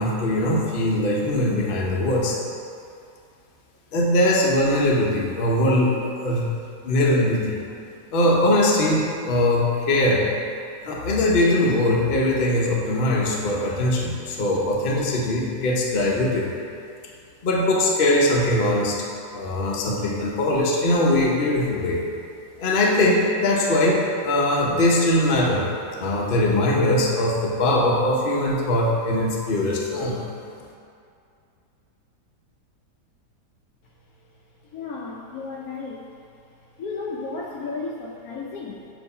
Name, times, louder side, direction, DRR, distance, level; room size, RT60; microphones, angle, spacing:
voice 1, 0.0-2.4 3.9-6.5 6.8-7.6 8.1-10.3 10.8-16.5 17.4-19.1 19.3-22.0 22.6-25.7 26.0-30.2, left 1 dB, 40° left, -2 dB, 0.8 m, -21 dB
voice 2, 34.7-36.1 36.6-38.9, left 4 dB, 70° left, -1 dB, 1.0 m, -34 dB
7.6 x 3.0 x 5.4 m, 2.5 s
omnidirectional pair, 1.8 m